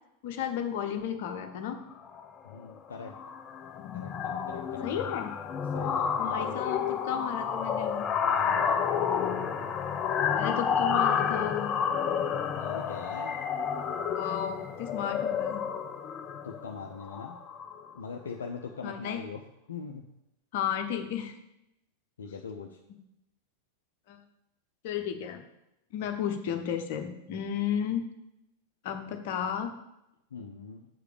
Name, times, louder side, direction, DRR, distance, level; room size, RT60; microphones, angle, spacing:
voice 1, 0.2-1.8 4.8-5.3 6.2-8.1 10.4-11.7 14.1-15.6 18.8-19.2 20.5-21.3 24.1-24.2 24.8-25.4 25.9-28.1 28.8-29.7, left 8 dB, 50° left, 5 dB, 1.1 m, -33 dB
sound 1, 1.9-2.2 2.5-2.8 3.0-17.9, left 7 dB, 30° left, 0.7 m, -30 dB
voice 2, 2.4-3.2 3.9-5.1 5.7-6.7 8.3-8.7 12.6-13.4 16.4-17.4 17.9-19.4 19.7-20.0 22.2-22.8 30.3-30.9, left 5 dB, 65° left, 2 dB, 0.7 m, -41 dB
7.6 x 4.9 x 6.9 m, 0.85 s
figure-of-eight pair, 90°, 0 cm